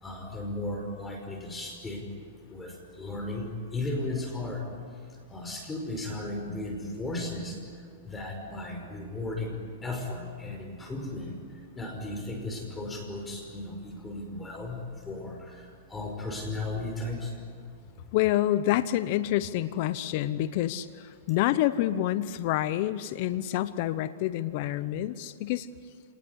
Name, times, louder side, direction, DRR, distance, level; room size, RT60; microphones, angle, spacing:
voice 1, 0.0-2.0 2.5-4.7 5.3-7.6 8.0-11.4 11.8-17.3, left 2 dB, 10° left, 3 dB, 5.4 m, -35 dB
voice 2, 18.1-25.7, left 14 dB, 55° left, 14 dB, 1.0 m, -27 dB
27.0 x 20.0 x 9.9 m, 2.2 s
hypercardioid pair, 130°, 0 cm